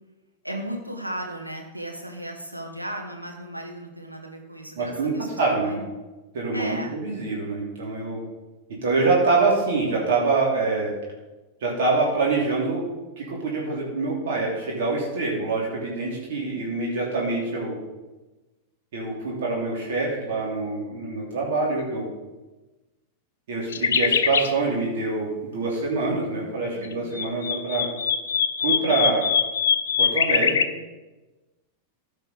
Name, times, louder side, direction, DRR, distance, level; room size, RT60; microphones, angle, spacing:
voice 1, 0.4-5.9 6.5-7.0 26.7-27.2, right 1 dB, 90° right, 1 dB, 1.7 m, -36 dB
voice 2, 4.8-5.8 6.3-8.2 8.8-10.9 11.6-12.8 13.2-17.8 18.9-22.1 23.5-27.9 28.6-29.3 30.0-30.6, right 3 dB, 55° right, -3 dB, 3.0 m, -25 dB
sound 1, 23.7-24.5 26.9-30.7, left 7 dB, 65° left, 0.7 m, -23 dB
15.0 x 5.7 x 5.2 m, 1.1 s
figure-of-eight pair, 90°, 0 cm